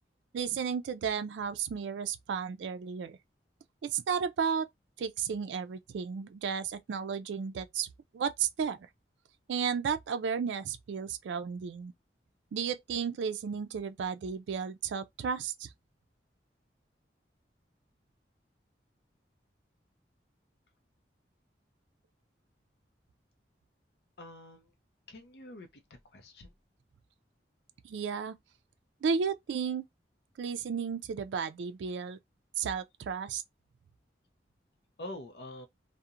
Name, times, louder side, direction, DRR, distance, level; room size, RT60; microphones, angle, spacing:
voice 1, 0.3-3.2 3.8-4.7 5.0-7.9 8.1-8.9 9.5-11.9 12.5-15.7 27.8-28.3 29.0-29.9 30.4-32.2 32.6-33.4, right 6 dB, 85° right, 0.3 m, -33 dB
voice 2, 24.2-24.7 25.1-25.7 26.1-26.5 35.0-35.7, left 1 dB, 60° left, 0.5 m, -45 dB
2.7 x 2.1 x 2.4 m
head